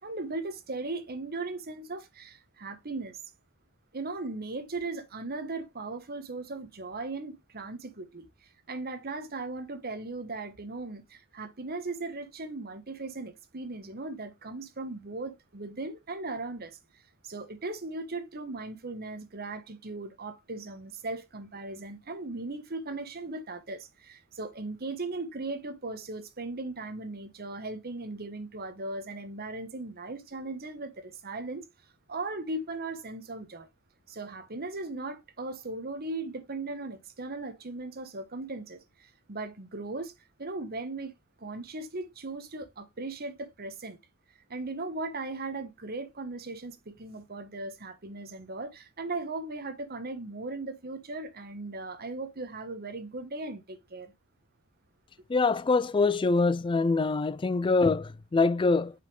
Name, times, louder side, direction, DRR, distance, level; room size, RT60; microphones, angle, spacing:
voice 1, 0.0-3.2 3.9-8.2 8.7-16.8 17.2-31.6 32.1-33.7 34.1-40.1 40.4-41.1 41.4-44.0 44.5-54.1, right 2 dB, 45° right, 1.2 m, -38 dB
voice 2, 55.3-58.9, left 3 dB, 20° left, 0.3 m, -24 dB
6.3 x 5.3 x 3.2 m
head